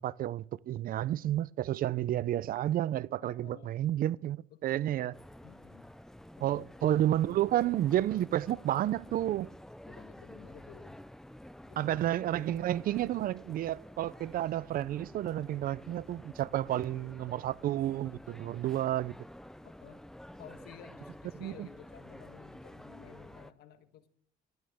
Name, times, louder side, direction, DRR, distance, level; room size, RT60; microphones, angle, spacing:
voice 1, 0.0-5.1 6.4-9.5 11.8-19.1 21.4-21.7, right 13 dB, 60° right, 0.5 m, -31 dB
voice 2, 3.2-3.9 4.5-5.9 6.4-6.7 9.8-11.0 11.6-12.2 19.6-20.0 20.4-24.1, left 10 dB, 75° left, 1.6 m, -54 dB
sound 1, 5.1-23.5, left 1 dB, 5° left, 0.6 m, -50 dB
17.5 x 12.5 x 3.6 m
cardioid pair, 110°, 17 cm